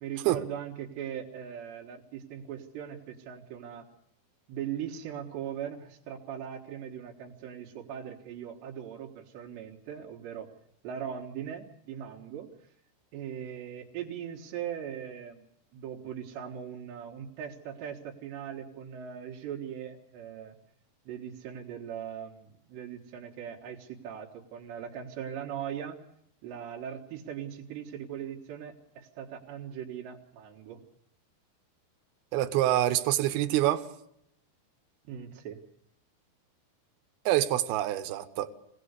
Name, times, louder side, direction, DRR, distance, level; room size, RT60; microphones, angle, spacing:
voice 1, 0.0-3.9 4.5-10.5 10.8-12.5 13.1-15.4 15.7-20.6 21.1-26.0 26.4-30.8 35.1-35.6, right 9 dB, 90° right, 3.8 m, -40 dB
voice 2, 32.3-33.9 37.3-38.5, right 14 dB, 75° right, 2.9 m, -26 dB
24.0 x 18.0 x 8.2 m
omnidirectional pair, 4.8 m